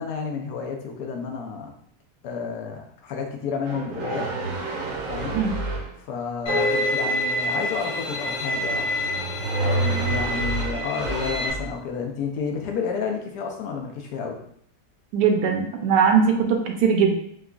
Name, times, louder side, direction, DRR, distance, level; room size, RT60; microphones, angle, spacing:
voice 1, 0.0-1.7 2.2-4.3 5.1-5.4 6.0-8.9 9.6-14.4, left 5 dB, 75° left, 2 dB, 1.2 m, -30 dB
sound 1, 3.6-5.9 8.6-11.7, right 3 dB, 65° right, 0.9 m, -29 dB
Bowed string instrument, 6.5-11.5, left 1 dB, 55° left, 0.9 m, -28 dB
sound 2, 6.5-11.0, left 1 dB, 10° left, 0.9 m, -34 dB
voice 2, 15.1-17.2, right 6 dB, 85° right, 3 dB, 1.2 m, -20 dB
4.8 x 2.3 x 2.3 m, 0.66 s
omnidirectional pair, 1.8 m